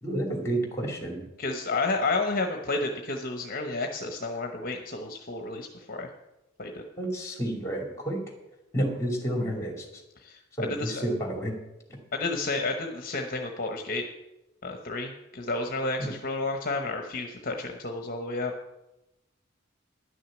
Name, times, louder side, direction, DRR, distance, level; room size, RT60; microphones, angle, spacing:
voice 1, 0.0-1.2 7.0-8.2 8.7-9.9 10.6-11.5 16.0-16.1, right 1 dB, 15° left, 2 dB, 2.6 m, -30 dB
voice 2, 1.4-6.1 6.6-6.8 10.2-11.0 12.1-14.0 14.6-18.5, left 3 dB, 45° left, 4 dB, 0.9 m, -31 dB
11.0 x 6.4 x 8.4 m, 0.96 s
head